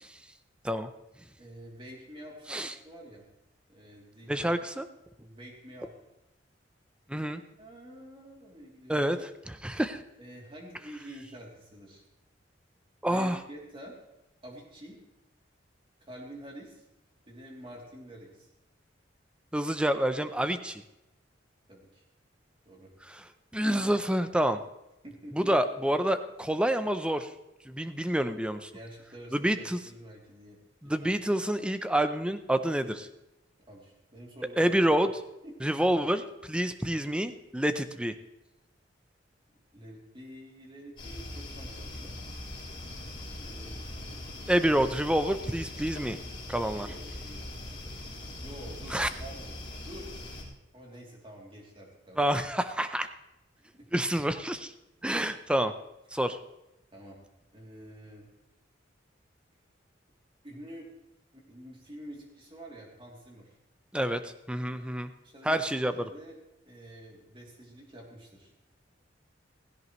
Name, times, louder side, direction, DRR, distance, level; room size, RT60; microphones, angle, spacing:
voice 1, 1.4-3.2 3.7-4.5 5.2-5.9 7.2-9.0 10.2-12.0 13.0-14.0 14.4-15.0 16.0-16.9 17.3-18.5 21.7-22.0 22.6-22.9 25.0-25.6 28.7-31.1 33.7-34.8 35.4-35.6 39.7-42.1 43.4-44.7 46.7-47.8 48.4-49.5 49.8-50.1 50.7-52.3 53.6-53.9 56.9-57.2 57.5-58.3 60.4-60.9 61.3-63.5 65.2-66.4 66.6-68.7, right 1 dB, 30° right, -2 dB, 3.0 m, -48 dB
voice 2, 4.3-4.9 7.1-7.4 8.9-10.0 13.0-13.4 19.5-20.8 23.1-23.2 23.5-24.6 25.4-27.3 27.7-28.7 29.3-29.8 30.8-33.1 34.6-35.1 35.6-38.1 44.5-46.2 46.5-46.9 48.9-49.1 52.2-53.1 53.9-54.7 55.0-55.7 56.1-56.4 63.9-65.1 65.4-65.9, right 1 dB, 5° right, 10 dB, 0.6 m, -28 dB
sound 1, 41.0-50.4, left 1 dB, 25° left, 4.7 m, -41 dB
16.5 x 16.0 x 3.2 m, 0.94 s
head